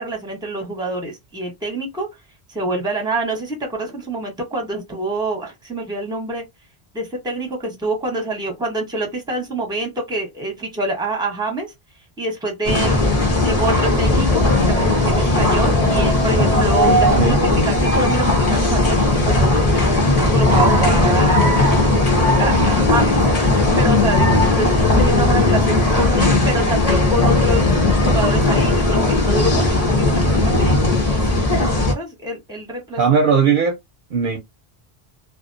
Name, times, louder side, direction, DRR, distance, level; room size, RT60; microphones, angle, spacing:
voice 1, 0.0-2.1 2.5-6.4 6.9-11.7 12.2-13.0 13.4-17.4 17.6-21.5 22.4-23.2 23.8-27.7 28.0-30.8 31.1-33.0, right 2 dB, 5° right, 0.7 m, -26 dB
sound 1, 12.6-31.9, left 2 dB, 40° left, 0.8 m, -17 dB
voice 2, 33.0-33.7 34.1-34.4, right 6 dB, 60° right, 0.6 m, -18 dB
2.3 x 2.1 x 2.5 m
omnidirectional pair, 1.1 m